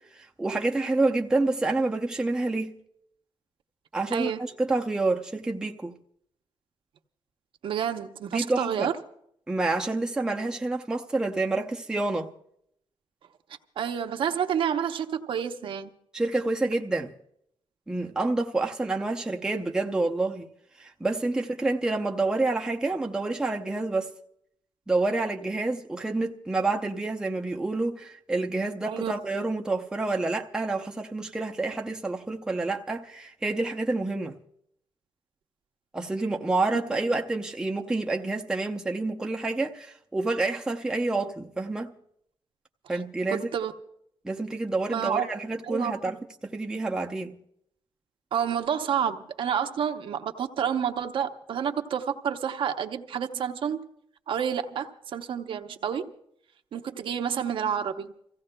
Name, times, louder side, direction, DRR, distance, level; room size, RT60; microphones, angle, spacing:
voice 1, 0.2-2.7 3.9-5.9 8.3-8.9 9.5-12.3 16.1-17.1 17.9-20.5 20.8-24.1 24.9-34.4 35.9-41.9 42.9-43.5 44.2-46.2 46.4-47.4, right 2 dB, 5° right, 0.6 m, -28 dB
voice 2, 4.1-4.4 7.6-8.9 13.8-15.9 28.9-29.2 43.3-43.7 44.9-45.3 45.7-45.9 48.3-53.8 54.3-56.1 56.7-58.1, right 8 dB, 65° right, 0.8 m, -29 dB
30.0 x 15.5 x 2.2 m
wide cardioid pair, 165°, 9 cm